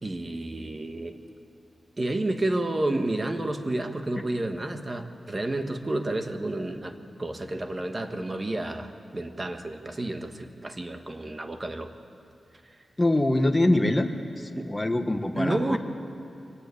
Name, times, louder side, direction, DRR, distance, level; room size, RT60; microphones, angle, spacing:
voice 1, 0.0-1.2 2.0-11.9 14.5-14.7 15.4-15.8, right 2 dB, 25° right, 6 dB, 1.5 m, -30 dB
voice 2, 13.0-14.1 14.3-15.8, left 1 dB, 20° left, 6 dB, 1.4 m, -24 dB
24.0 x 17.5 x 8.6 m, 2.5 s
wide cardioid pair, 105°, 0 cm